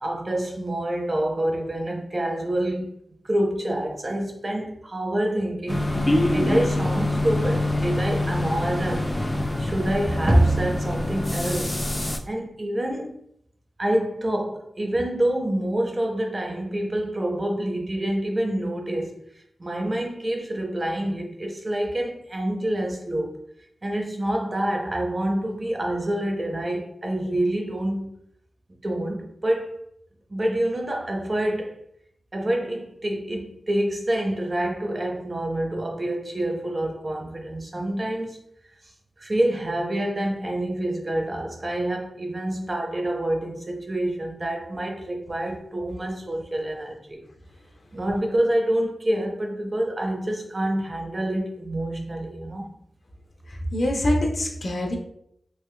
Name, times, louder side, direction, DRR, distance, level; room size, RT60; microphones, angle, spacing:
voice 1, 0.0-2.9 3.2-9.1 9.6-11.8 12.3-13.2 13.8-19.1 19.6-23.3 23.8-28.1 28.8-29.7 30.3-31.8 32.3-38.4 39.2-47.2 47.9-52.7, right 1 dB, 35° right, 0.5 m, -27 dB
sound 1, 5.7-12.2, left 1 dB, 20° left, 0.3 m, -25 dB
voice 2, 53.5-55.0, left 1 dB, 65° left, 0.6 m, -24 dB
3.4 x 2.9 x 2.2 m
wide cardioid pair, 105°, 0 cm